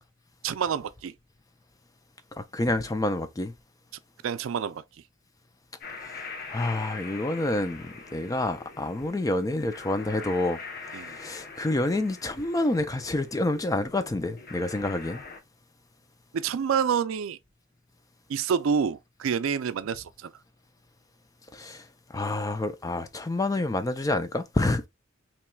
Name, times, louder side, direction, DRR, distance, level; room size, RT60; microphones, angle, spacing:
voice 1, 0.4-1.1 4.2-4.8 10.9-11.2 16.3-17.4 18.3-20.3, right 7 dB, 75° right, 0.4 m, -28 dB
voice 2, 2.4-3.5 6.0-6.2 6.5-15.2 21.5-24.9, left 2 dB, 15° left, 0.4 m, -28 dB
sound 1, 5.8-15.4, left 4 dB, 50° left, 0.8 m, -43 dB
4.4 x 3.0 x 2.2 m
head